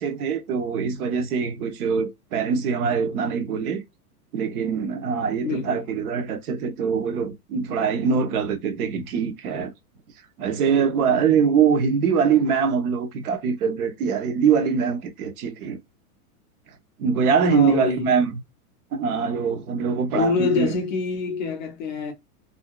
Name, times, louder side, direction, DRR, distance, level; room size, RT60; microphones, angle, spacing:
voice 1, 0.0-3.8 4.3-9.7 10.4-15.8 17.0-18.4 18.9-20.8, right 6 dB, 70° right, 0.9 m, -23 dB
voice 2, 5.4-5.8 17.5-18.1 20.1-22.1, left 4 dB, 35° left, 0.4 m, -25 dB
2.6 x 2.2 x 2.2 m
hypercardioid pair, 140°, 46 cm